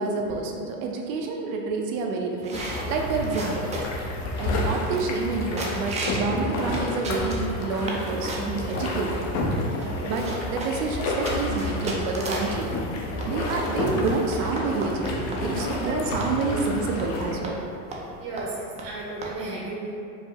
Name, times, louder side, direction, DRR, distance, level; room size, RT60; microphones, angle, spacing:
voice 1, 0.0-3.8 4.4-9.2 10.0-12.7 13.3-17.6, right 3 dB, 80° right, 1 dB, 0.8 m, -28 dB
sound 1, 2.4-4.1 4.6-4.7 4.9-5.3 5.6-6.3 6.7-8.0 8.3-8.9 9.5-9.6 9.8-12.6 13.2-15.9 16.2-16.3 16.6-16.7 17.0-17.1 17.4-17.6 17.9-18.1 18.4-18.5 18.8-18.9 19.2-19.3, right 2 dB, 15° right, 0.4 m, -34 dB
sound 2, 2.5-17.3, left 2 dB, 40° left, 0.7 m, -30 dB
voice 2, 9.7-10.0 15.5-16.1 16.5-16.7 18.2-20.0, right 2 dB, 45° right, -5 dB, 0.8 m, -34 dB
4.9 x 2.1 x 4.6 m, 2.5 s
supercardioid pair, 130°, 42 cm